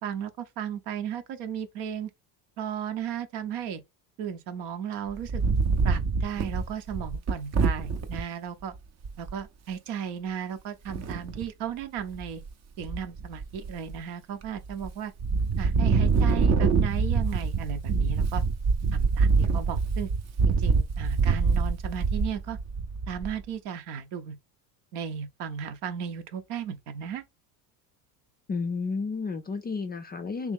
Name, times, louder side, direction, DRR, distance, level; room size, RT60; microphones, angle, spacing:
voice 1, 0.0-2.1 2.6-3.8 4.2-5.4 5.8-8.8 9.2-12.4 12.8-15.1 15.6-18.4 18.9-20.1 20.4-22.6 23.1-24.4 24.9-27.2, right 8 dB, 70° right, 0.9 m, -35 dB
Wind, 5.1-8.2 8.7-8.8 9.0-9.4 10.9-11.5 12.0-12.5 12.8-14.0 14.4-14.9 15.2-23.4, right 4 dB, 35° right, 0.6 m, -25 dB
voice 2, 28.5-30.5, left 4 dB, 20° left, 0.3 m, -31 dB
3.1 x 2.9 x 3.6 m
supercardioid pair, 90°, 48 cm